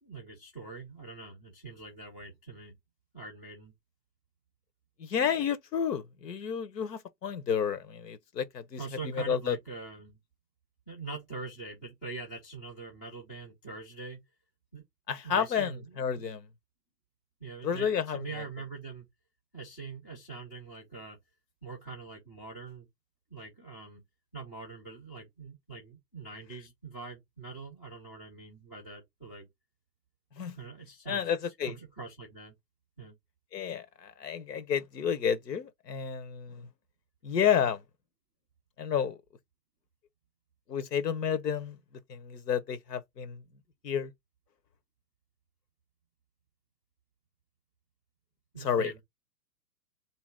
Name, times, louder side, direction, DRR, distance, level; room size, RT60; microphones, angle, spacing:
voice 1, 0.0-2.8 3.1-3.7 8.8-10.2 10.9-14.2 14.7-14.8 15.2-16.2 17.4-19.1 19.5-21.2 21.6-22.9 23.3-24.0 24.3-29.5 30.5-31.3 31.6-32.5 33.0-33.1 48.5-49.0, right 4 dB, 5° left, 0.4 m, -43 dB
voice 2, 5.0-9.6 15.1-16.4 17.6-18.2 30.4-30.6 31.1-31.7 33.5-36.7 37.2-37.8 38.8-39.2 40.7-41.8 42.1-43.4 43.8-44.1 48.6-49.0, left 8 dB, 75° left, 1.2 m, -31 dB
3.4 x 3.0 x 4.8 m
hypercardioid pair, 145°, 49 cm